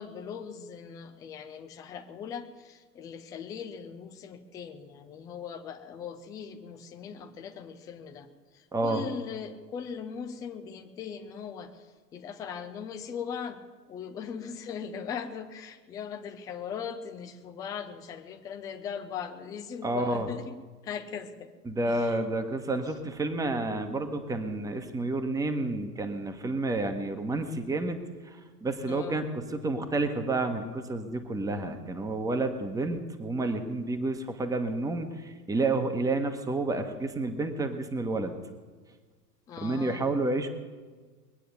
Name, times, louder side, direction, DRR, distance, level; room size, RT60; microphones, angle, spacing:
voice 1, 0.0-8.3 8.5-11.9 12.1-13.6 13.9-20.5 20.8-21.5 21.8-22.2 28.8-29.3 39.5-40.1, left 7 dB, 10° left, 7 dB, 0.4 m, -39 dB
voice 2, 8.7-9.0 19.8-20.3 21.6-28.0 28.6-38.3 39.6-40.5, right 2 dB, 5° right, 7 dB, 1.2 m, -30 dB
21.0 x 9.1 x 6.9 m, 1.4 s
figure-of-eight pair, 90°, 49 cm